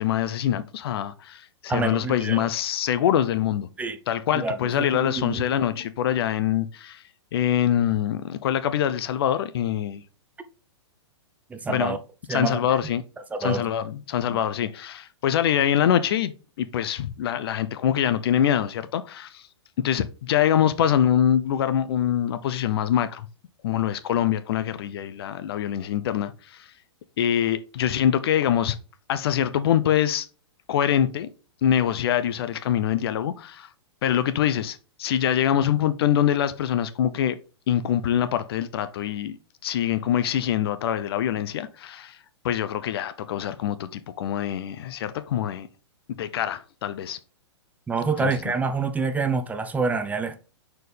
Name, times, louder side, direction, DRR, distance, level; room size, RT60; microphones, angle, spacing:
voice 1, 0.0-3.7 4.1-7.0 7.3-10.0 11.7-12.0 12.3-13.0 13.4-16.3 16.6-19.5 19.8-23.3 23.6-26.7 27.2-28.8 29.1-30.3 30.7-31.3 31.6-33.7 34.0-37.4 37.7-39.4 39.6-42.2 42.4-45.7 46.2-47.2 48.2-48.5, left 10 dB, 60° left, 0.6 m, -24 dB
voice 2, 1.7-2.5 3.8-4.0 4.3-5.5 11.5-12.0 12.3-12.6 13.3-13.7 14.3-14.4 47.9-50.4, right 4 dB, 10° right, 0.6 m, -27 dB
6.4 x 4.4 x 3.3 m
hypercardioid pair, 120°, 15 cm